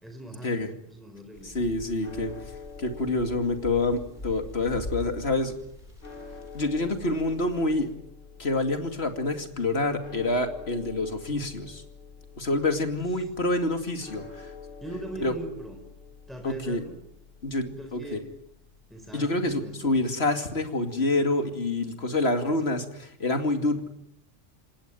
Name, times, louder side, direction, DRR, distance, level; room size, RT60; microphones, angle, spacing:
voice 1, 0.0-1.5 14.8-15.8 16.3-17.0 17.6-18.3 18.9-19.9 22.4-22.6, right 1 dB, ahead, 5 dB, 4.1 m, -41 dB
sound 1, 1.3-7.9, left 2 dB, 35° left, 4.2 m, -43 dB
sound 2, 1.4-19.8, left 5 dB, 75° left, 3.1 m, -48 dB
voice 2, 1.4-2.3 2.8-5.5 6.5-7.9 8.4-11.8 12.4-14.5 15.2-15.3 16.4-16.8 17.4-18.2 19.1-23.9, left 2 dB, 50° left, 6 dB, 2.8 m, -27 dB
27.5 x 19.5 x 9.1 m, 0.77 s
omnidirectional pair, 1.3 m